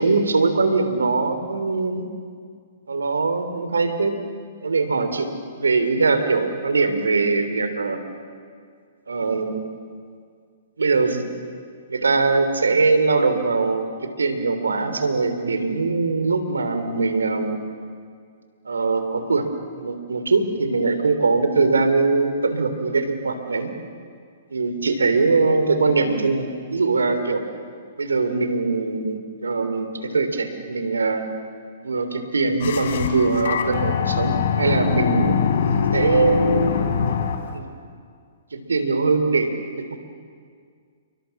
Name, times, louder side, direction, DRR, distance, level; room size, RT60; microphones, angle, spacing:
voice 1, 0.0-2.1 2.9-4.2 4.6-8.0 9.1-9.7 10.8-11.2 11.9-17.6 18.6-19.5 19.8-23.7 24.5-27.4 28.0-31.3 31.8-35.4 35.9-36.8 37.5-37.7 38.5-40.0, right 3 dB, 80° right, 8 dB, 3.2 m, -22 dB
sound 1, 32.6-37.6, left 7 dB, 60° left, 3.2 m, -23 dB
28.5 x 23.5 x 7.2 m, 2.1 s
figure-of-eight pair, 120°, 0 cm